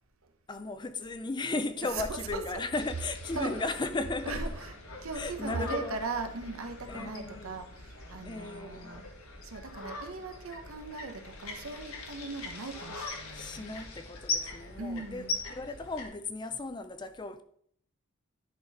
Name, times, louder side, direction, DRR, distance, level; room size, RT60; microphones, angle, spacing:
voice 1, 0.5-4.4 5.1-6.0 6.9-7.6 8.2-9.0 12.9-13.0 13.3-17.4, left 2 dB, 20° left, 0.4 m, -36 dB
voice 2, 1.8-2.6 3.4-3.5 4.2-4.7 5.0-9.0 9.4-13.8 14.8-15.4, right 3 dB, 80° right, 1.0 m, -38 dB
sound 1, 2.7-16.1, left 3 dB, 85° left, 1.5 m, -41 dB
11.0 x 4.1 x 4.2 m
head